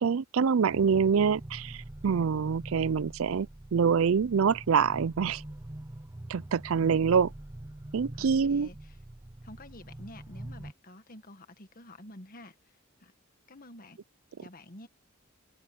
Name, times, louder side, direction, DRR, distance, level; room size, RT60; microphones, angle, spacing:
voice 1, 0.0-5.4 6.3-7.3 7.9-8.7, right 6 dB, 70° right, 0.4 m, -26 dB
sound 1, 0.7-10.7, right 1 dB, 15° right, 0.5 m, -44 dB
voice 2, 8.1-9.0 9.4-13.1 13.5-14.0 14.4-14.9, left 1 dB, 45° left, 1.7 m, -49 dB
open air
head